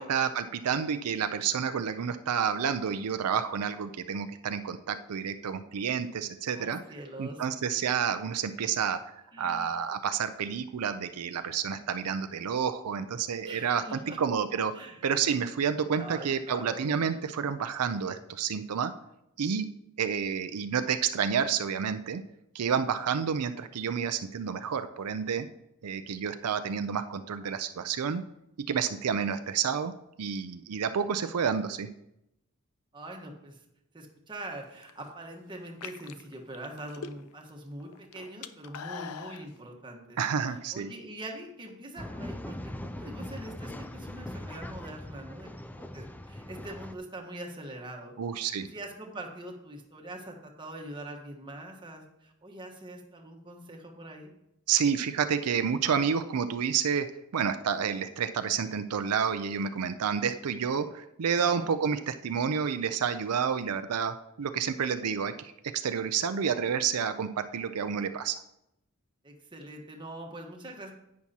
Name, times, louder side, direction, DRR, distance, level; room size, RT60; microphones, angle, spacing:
voice 1, 0.0-6.8 7.2-18.9 19.4-19.6 20.0-22.2 22.5-25.5 25.8-28.2 28.7-29.9 30.2-31.9 40.2-40.9 48.2-48.7 54.7-57.1 57.3-68.4, right 7 dB, 85° right, 10 dB, 0.5 m, -29 dB
voice 2, 6.5-7.4 9.3-9.8 13.4-14.2 14.7-15.0 16.0-17.0 32.9-33.6 33.9-40.2 40.7-54.3 61.4-61.7 69.2-70.9, right 1 dB, 20° right, 1 dB, 1.2 m, -43 dB
sound 1, 34.6-35.1 35.7-37.5 37.8-39.5, left 6 dB, 80° left, 0.5 m, -42 dB
Male speech man speaking / Chatter / Rattle, 42.0-46.9, left 1 dB, 5° left, 0.3 m, -41 dB
10.5 x 8.4 x 2.8 m, 0.84 s
head